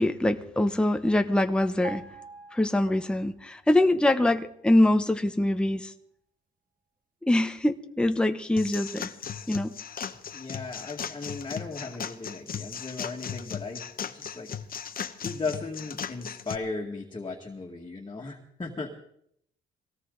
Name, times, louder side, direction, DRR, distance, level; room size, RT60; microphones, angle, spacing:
voice 1, 0.0-2.0 2.5-5.9 7.3-9.1 9.5-9.7, left 1 dB, 5° left, 8 dB, 0.9 m, -24 dB
sound 1, 1.8-3.5 3.7-4.0, right 4 dB, 45° right, 2.2 m, -44 dB
sound 2, 8.6-16.6, left 7 dB, 45° left, 1.0 m, -37 dB
voice 2, 10.3-14.5 15.2-19.0, left 3 dB, 25° left, 0 dB, 2.0 m, -36 dB
20.0 x 17.5 x 4.0 m, 0.69 s
cardioid pair, 90°, 20 cm